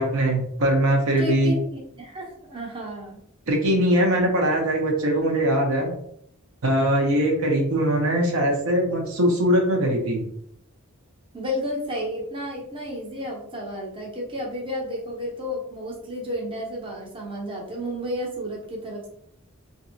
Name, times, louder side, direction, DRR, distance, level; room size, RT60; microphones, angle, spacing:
voice 1, 0.0-1.5 3.5-5.9 6.6-10.2, right 1 dB, 75° right, 1 dB, 0.7 m, -21 dB
voice 2, 1.2-3.2 11.3-19.1, equal, 25° right, -2 dB, 0.6 m, -32 dB
2.9 x 2.6 x 2.6 m, 0.69 s
head